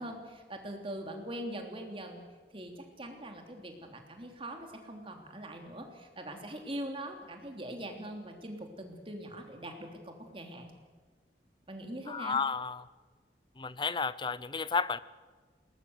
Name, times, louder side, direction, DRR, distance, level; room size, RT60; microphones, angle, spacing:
voice 1, 0.0-2.2 2.5-10.7 11.7-12.4, right 1 dB, 30° right, 3.2 m, -42 dB
voice 2, 12.1-12.9 13.6-15.0, left 5 dB, 25° left, 0.6 m, -32 dB
21.5 x 19.5 x 8.0 m
head